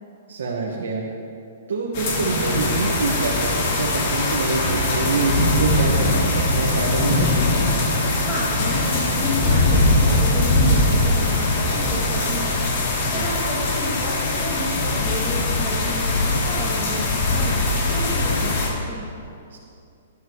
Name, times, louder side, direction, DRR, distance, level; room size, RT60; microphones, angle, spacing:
voice 1, 0.3-1.0 1.7-7.3 13.0-13.2 19.5-19.6, right 4 dB, 90° right, -2 dB, 1.5 m, -26 dB
Raining in Rome, 1.9-18.7, left 2 dB, 40° left, 3.5 m, -21 dB
sound 1, 2.2-12.3, right 1 dB, 45° right, 2.7 m, -34 dB
voice 2, 8.2-12.5 12.8-19.1, left 2 dB, 15° left, -10 dB, 2.4 m, -32 dB
18.5 x 11.5 x 3.1 m, 2.5 s
hypercardioid pair, 165°, 0 cm